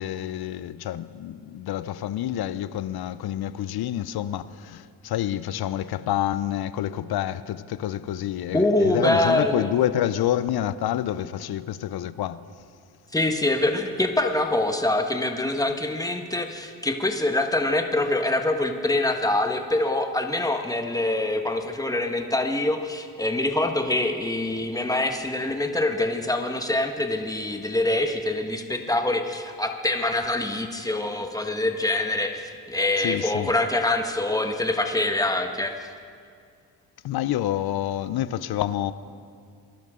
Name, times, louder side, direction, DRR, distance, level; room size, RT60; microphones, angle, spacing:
voice 1, 0.0-12.4 33.0-33.5 37.0-38.9, left 12 dB, 65° left, 0.7 m, -28 dB
voice 2, 8.5-9.7 13.1-35.7, left 2 dB, 10° left, 1.5 m, -25 dB
22.5 x 11.5 x 3.8 m
supercardioid pair, 65°, 41 cm